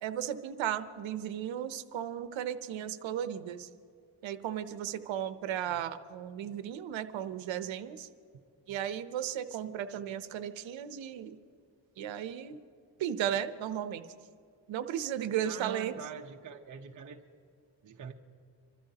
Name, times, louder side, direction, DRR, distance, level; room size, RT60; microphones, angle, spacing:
voice 1, 0.0-3.7 4.2-8.1 8.7-11.4 12.0-12.6 13.0-14.1 14.7-15.9, right 10 dB, 90° right, 11 dB, 0.8 m, -35 dB
voice 2, 15.4-17.2 17.8-18.1, right 6 dB, 40° right, 2 dB, 0.9 m, -43 dB
26.5 x 13.5 x 2.9 m, 2.3 s
cardioid pair, 85°, 44 cm